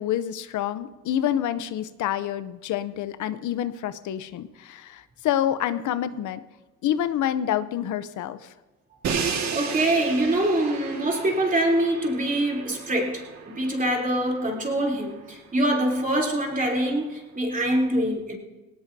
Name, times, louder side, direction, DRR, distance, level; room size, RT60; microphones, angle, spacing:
voice 1, 0.0-6.4 6.8-8.5, left 11 dB, 75° left, 13 dB, 0.7 m, -27 dB
Crash cymbal, 9.0-15.0, right 6 dB, 65° right, 1.9 m, -33 dB
voice 2, 9.5-18.4, right 1 dB, 25° right, -1 dB, 3.4 m, -24 dB
19.0 x 18.0 x 2.7 m, 1.1 s
cardioid pair, 90°, 30 cm